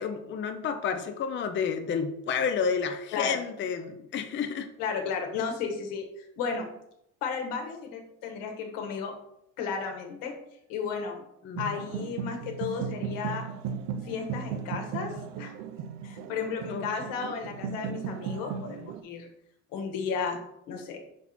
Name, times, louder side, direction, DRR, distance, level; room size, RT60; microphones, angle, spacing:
voice 1, 0.0-4.7 11.4-11.7 16.7-16.8, left 6 dB, 35° left, 6 dB, 0.6 m, -30 dB
voice 2, 4.8-6.7 7.2-9.2 9.6-10.3 10.7-11.2 11.6-13.5 14.0-15.5 16.0-19.3 19.7-20.4 20.7-21.0, left 6 dB, 85° left, 4 dB, 1.4 m, -34 dB
sound 1, 11.5-19.0, right 7 dB, 85° right, 0.6 m, -36 dB
5.9 x 4.2 x 4.2 m, 0.76 s
cardioid pair, 115°, 33 cm